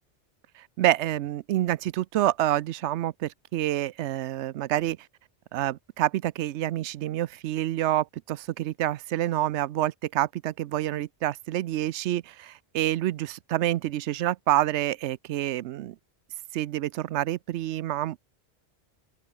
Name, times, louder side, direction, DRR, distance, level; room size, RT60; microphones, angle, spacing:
voice 1, 0.5-5.0 5.5-16.0 16.5-18.2, right 13 dB, 90° right, 0.9 m, -27 dB
open air
omnidirectional pair, 1.1 m